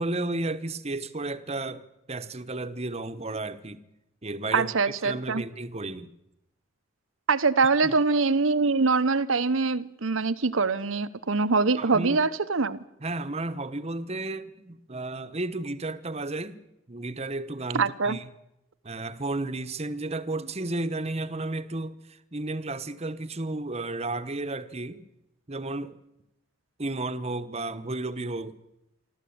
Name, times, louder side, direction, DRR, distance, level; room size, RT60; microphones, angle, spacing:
voice 1, 0.0-3.8 4.2-4.7 5.0-6.1 7.8-7.9 11.8-12.2 13.0-16.6 16.9-18.3 18.8-25.0 25.5-26.0 26.8-28.6, right 2 dB, 30° right, 1.1 m, -33 dB
voice 2, 4.5-5.4 7.3-12.8 17.7-18.2, right 4 dB, 80° right, 1.0 m, -24 dB
26.5 x 13.0 x 8.7 m
head